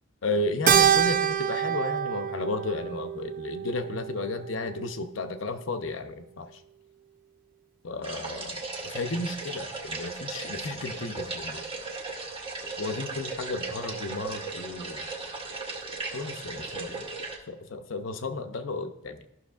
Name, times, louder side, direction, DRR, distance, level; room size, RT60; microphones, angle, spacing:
voice 1, 0.2-6.6 7.8-11.6 12.8-15.1 16.1-17.1 17.5-19.2, left 2 dB, 70° left, 8 dB, 0.6 m, -33 dB
Keyboard (musical), 0.7-5.3, right 9 dB, 40° right, 0.3 m, -26 dB
sound 1, 8.0-17.4, right 3 dB, 25° right, 0.9 m, -36 dB
13.0 x 6.0 x 2.4 m, 0.82 s
head